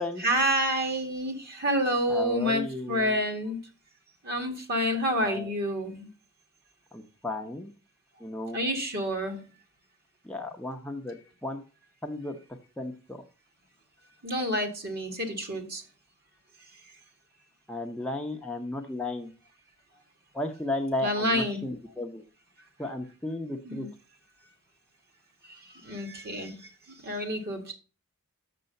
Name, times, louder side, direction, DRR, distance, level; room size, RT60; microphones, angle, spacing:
voice 1, 0.2-3.6 4.2-6.1 8.5-9.4 14.2-15.8 21.0-21.7 23.6-23.9 25.5-25.6 25.8-26.6 27.0-27.7, equal, 45° right, 4 dB, 2.1 m, -28 dB
voice 2, 2.1-3.2 5.2-5.5 6.9-7.7 8.2-8.6 10.2-11.6 12.0-12.4 12.8-13.2 17.7-19.3 20.3-22.2 22.8-23.9, left 2 dB, 5° left, 3 dB, 0.7 m, -34 dB
6.8 x 6.7 x 5.2 m, 0.34 s
head